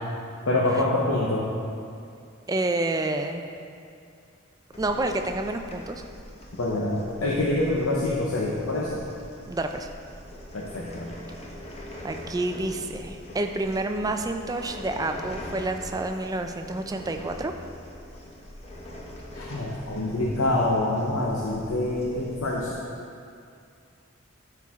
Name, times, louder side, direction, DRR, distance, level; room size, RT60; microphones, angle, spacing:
voice 1, 0.5-1.5 6.5-9.0 10.5-11.1 19.3-22.7, left 2 dB, 75° left, -3 dB, 0.8 m, -26 dB
voice 2, 2.5-3.5 4.8-6.0 9.5-9.9 12.0-17.5, right 2 dB, 20° right, 6 dB, 0.4 m, -29 dB
sound 1, 4.7-22.7, left 1 dB, 30° left, 0.9 m, -43 dB
12.5 x 4.5 x 3.6 m, 2.4 s
head